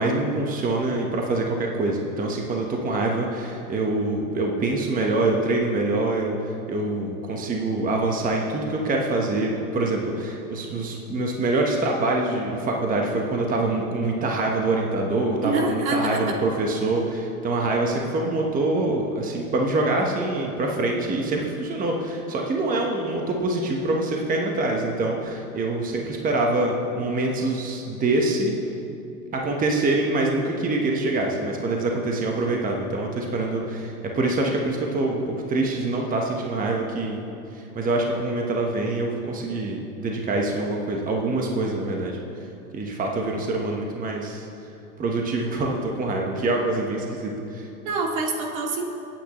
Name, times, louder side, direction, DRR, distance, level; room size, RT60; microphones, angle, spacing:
voice 1, 0.0-28.5 29.3-37.2 37.5-42.5 42.7-44.5 45.0-47.7, right 2 dB, 20° right, 0 dB, 1.2 m, -25 dB
voice 2, 15.4-16.4 47.8-48.8, right 3 dB, 65° right, -1 dB, 2.6 m, -26 dB
26.5 x 9.0 x 3.2 m, 2.7 s
hypercardioid pair, 110°, 45 cm